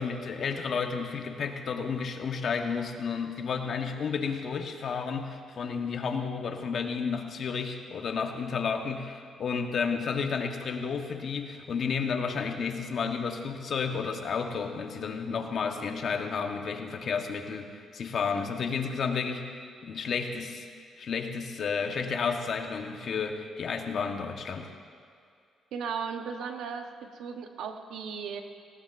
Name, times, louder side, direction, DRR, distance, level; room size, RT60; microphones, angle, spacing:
voice 1, 0.0-20.7 21.0-24.7, left 5 dB, 55° left, 4 dB, 1.2 m, -32 dB
voice 2, 25.7-28.4, right 6 dB, 80° right, 5 dB, 1.1 m, -36 dB
18.0 x 18.0 x 2.6 m, 2.3 s
cardioid pair, 90°, 0 cm